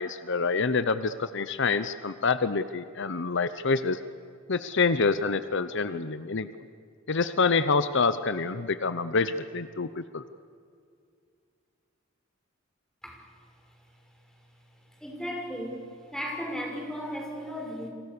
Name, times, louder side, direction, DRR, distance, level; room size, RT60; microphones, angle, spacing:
voice 1, 0.0-4.0 4.5-6.5 7.1-10.2, left 4 dB, 65° left, 12 dB, 0.8 m, -27 dB
voice 2, 15.0-15.8 16.1-17.9, equal, 5° left, 0 dB, 6.0 m, -35 dB
29.5 x 26.0 x 6.9 m, 2.3 s
head